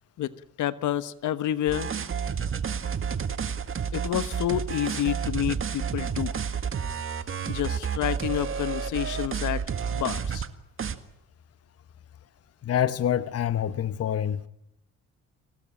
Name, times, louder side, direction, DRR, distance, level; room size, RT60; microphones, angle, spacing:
voice 1, 0.6-1.9 3.9-6.3 7.5-9.6 9.9-10.4, left 11 dB, 75° left, 1.3 m, -29 dB
sound 1, 1.7-10.5 10.8-11.0, right 7 dB, 45° right, 1.8 m, -30 dB
voice 2, 12.6-14.4, left 10 dB, 55° left, 1.0 m, -26 dB
25.0 x 18.5 x 9.0 m
cardioid pair, 90°, 30 cm